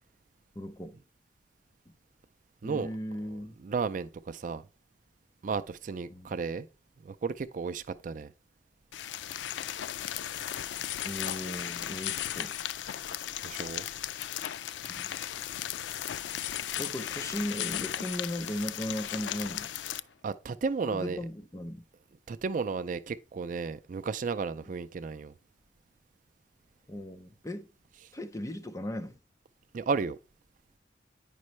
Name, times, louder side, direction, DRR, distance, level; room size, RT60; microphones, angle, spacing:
voice 1, 0.6-0.9 2.6-3.6 6.1-6.4 11.0-12.5 14.8-15.1 16.7-19.7 20.9-21.8 24.7-24.8 26.9-27.7 28.1-29.2, left 1 dB, 20° left, 0.7 m, -37 dB
voice 2, 3.6-4.6 5.4-6.7 7.0-8.3 13.4-13.9 20.2-21.2 22.3-25.3 29.7-30.2, right 5 dB, 45° right, 0.4 m, -33 dB
sound 1, 8.9-20.0, left 11 dB, 90° left, 0.4 m, -36 dB
9.5 x 5.4 x 3.1 m
head